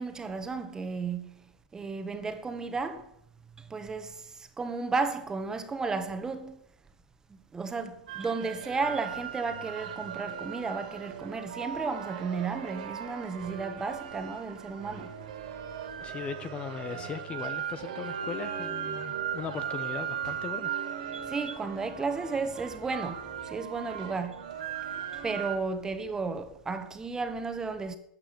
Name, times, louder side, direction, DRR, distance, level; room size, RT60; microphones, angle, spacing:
voice 1, 0.0-1.4 1.7-3.1 3.6-6.6 7.5-15.2 21.1-24.5 25.2-28.0, right 4 dB, 15° right, 1.7 m, -33 dB
sound 1, 8.1-25.6, right 8 dB, 70° right, 3.6 m, -38 dB
voice 2, 16.0-20.7, left 7 dB, 25° left, 1.0 m, -38 dB
13.5 x 9.2 x 8.0 m
hypercardioid pair, 120°, 4 cm